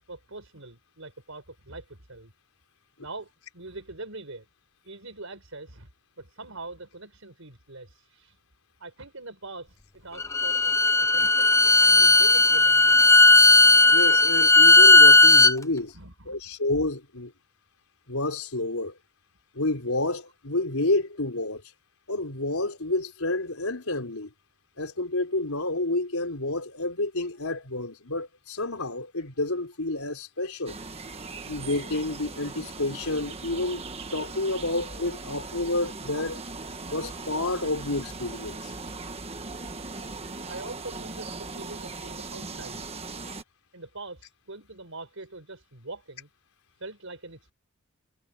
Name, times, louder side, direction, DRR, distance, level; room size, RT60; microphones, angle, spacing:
voice 1, 0.1-2.3 3.0-4.5 4.8-5.9 6.2-8.4 8.8-13.1 15.9-16.4 40.5-42.9 43.7-46.3 46.8-47.5, right 2 dB, 70° right, 5.2 m, -43 dB
Bowed string instrument, 10.2-15.5, left 2 dB, 15° left, 0.5 m, -16 dB
voice 2, 13.9-15.9 16.3-17.3 18.1-19.0 19.5-21.6 22.1-24.3 24.8-30.7 31.4-33.8 34.1-36.4 36.9-38.7, left 2 dB, 90° left, 4.2 m, -29 dB
sound 1, 30.7-43.4, right 3 dB, 30° right, 1.4 m, -39 dB
head